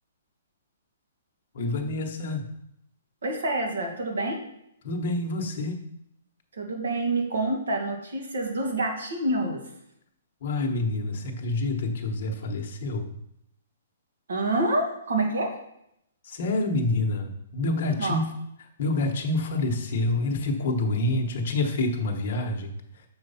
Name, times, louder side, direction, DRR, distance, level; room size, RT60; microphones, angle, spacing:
voice 1, 1.5-2.5 4.8-5.8 10.4-13.1 16.2-18.3 18.8-22.7, left 2 dB, 35° left, 1 dB, 1.0 m, -27 dB
voice 2, 3.2-4.4 6.6-9.6 14.3-15.5 18.0-18.2, right 2 dB, 80° right, 2 dB, 1.9 m, -27 dB
6.4 x 4.6 x 5.5 m, 0.76 s
hypercardioid pair, 180°, 0 cm